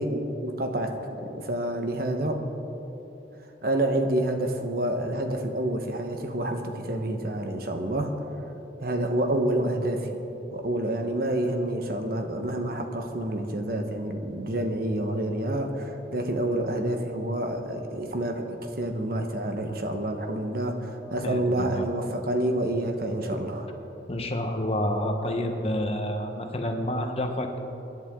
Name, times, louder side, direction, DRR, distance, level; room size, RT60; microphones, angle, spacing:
voice 1, 0.0-2.4 3.6-8.1 8.8-10.1 10.5-23.7, right 1 dB, 55° right, 4 dB, 1.3 m, -28 dB
voice 2, 21.1-21.9 24.1-27.6, left 1 dB, 35° left, 4 dB, 1.1 m, -29 dB
24.5 x 11.0 x 3.8 m, 3.0 s
head